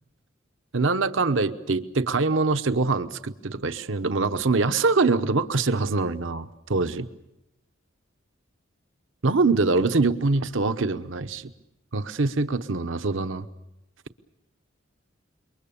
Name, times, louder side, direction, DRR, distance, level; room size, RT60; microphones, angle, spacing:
voice 1, 0.7-7.0 9.2-11.4 11.9-13.4, right 3 dB, 70° right, 10 dB, 1.0 m, -24 dB
27.5 x 23.0 x 7.0 m, 0.87 s
head